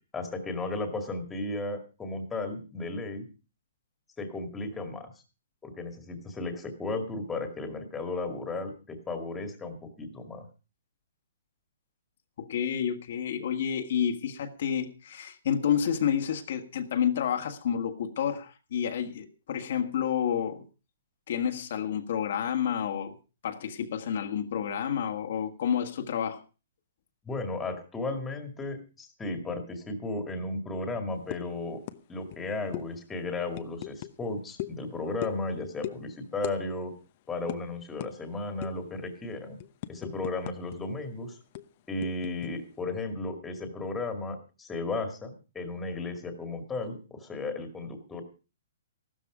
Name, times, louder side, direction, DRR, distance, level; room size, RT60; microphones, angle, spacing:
voice 1, 0.1-3.2 4.2-5.1 5.6-10.5 27.2-31.8 32.1-36.9 37.3-39.6 39.9-41.4 41.9-48.2, left 2 dB, 10° left, 2.1 m, -34 dB
voice 2, 12.4-20.6 21.3-23.2 23.4-26.4, left 8 dB, 50° left, 1.7 m, -29 dB
sound 1, 31.3-31.5 31.9-32.0 32.3-32.4 32.7-32.9 33.5-34.1 34.6-34.8 35.2-35.5 35.8-36.0 36.4-36.6 36.9-37.0 37.5-37.6 38.0-38.1 38.6-38.9 39.3-40.8 41.0-41.1 41.5-42.5, left 14 dB, 35° left, 0.9 m, -38 dB
15.0 x 13.0 x 4.9 m
hypercardioid pair, 170°, 0 cm